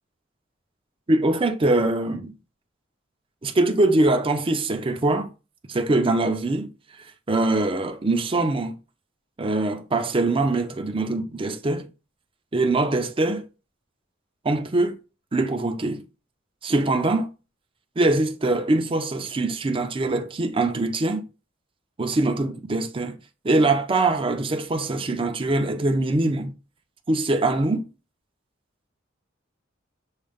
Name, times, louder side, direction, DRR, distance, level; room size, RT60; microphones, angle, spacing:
voice 1, 1.1-2.3 3.4-5.3 5.7-6.7 7.3-8.8 9.4-11.9 12.5-13.4 14.4-15.0 15.3-16.0 16.6-17.3 18.0-21.2 22.0-23.2 23.4-26.5 27.1-27.9, right 2 dB, 30° right, 0.5 m, -23 dB
6.3 x 2.2 x 3.5 m
head